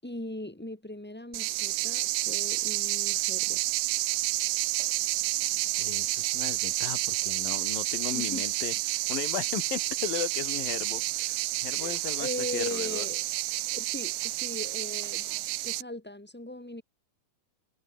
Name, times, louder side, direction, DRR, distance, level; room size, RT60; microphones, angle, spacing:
voice 1, 0.0-3.6 8.1-8.4 11.7-13.2 13.7-16.8, left 1 dB, 5° left, 5.2 m, -39 dB
sound 1, 1.3-15.8, right 19 dB, 80° right, 2.2 m, -30 dB
voice 2, 5.8-11.4 11.6-13.1, left 10 dB, 75° left, 3.3 m, -36 dB
omnidirectional pair, 4.2 m